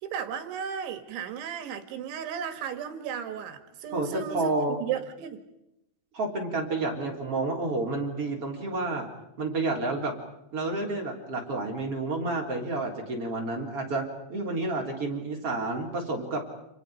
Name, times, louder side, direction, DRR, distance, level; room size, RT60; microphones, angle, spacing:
voice 1, 0.0-5.4, right 8 dB, 75° right, 7 dB, 4.1 m, -35 dB
voice 2, 3.9-4.8 6.1-9.1 9.4-10.2 10.5-16.4, right 2 dB, 30° right, -1 dB, 4.3 m, -30 dB
30.0 x 29.0 x 5.2 m, 0.85 s
omnidirectional pair, 5.5 m